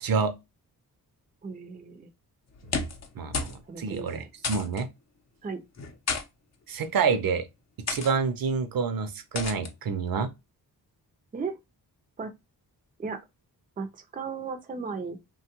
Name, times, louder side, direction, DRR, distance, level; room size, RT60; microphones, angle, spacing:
voice 1, 0.0-0.4 3.2-4.9 6.7-7.5 7.9-10.3, right 5 dB, 65° right, 0.6 m, -28 dB
voice 2, 1.4-2.1 3.7-4.3 5.4-5.6 11.3-11.6 12.2-12.3 13.0-13.2 13.8-15.2, right 5 dB, 25° right, 0.5 m, -35 dB
sound 1, 2.5-3.1 3.3-3.6 3.9-4.0 4.4-4.8 5.8-6.2 7.0-7.2 7.9-8.1 9.4-9.7, left 4 dB, 45° left, 0.7 m, -31 dB
3.1 x 2.3 x 2.8 m
wide cardioid pair, 140°, 37 cm